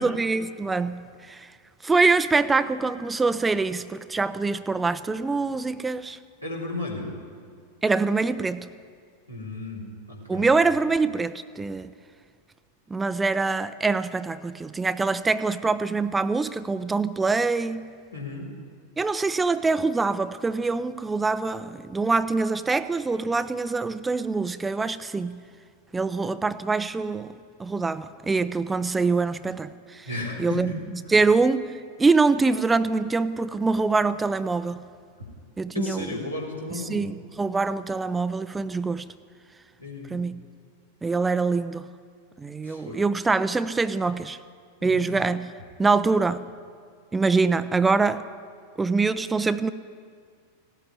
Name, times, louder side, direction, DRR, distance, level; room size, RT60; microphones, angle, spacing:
voice 1, 0.0-1.5 1.8-6.2 7.8-8.7 10.3-11.9 12.9-17.9 19.0-25.4 25.9-27.3 27.6-30.1 30.4-30.7 31.1-31.6 32.0-34.9 35.6-36.1 36.7-39.1 40.1-40.4 41.0-41.9 42.4-44.4 44.8-45.5 45.8-46.5 47.1-48.2 48.8-49.7, right 4 dB, 10° right, 14 dB, 0.4 m, -24 dB
voice 2, 6.4-7.1 9.3-10.5 18.1-18.5 30.0-30.8 35.7-37.1 39.8-40.2 42.6-43.0 44.8-45.0, left 2 dB, 90° left, -3 dB, 3.7 m, -34 dB
16.0 x 8.6 x 9.9 m, 2.1 s
figure-of-eight pair, 90°, 0 cm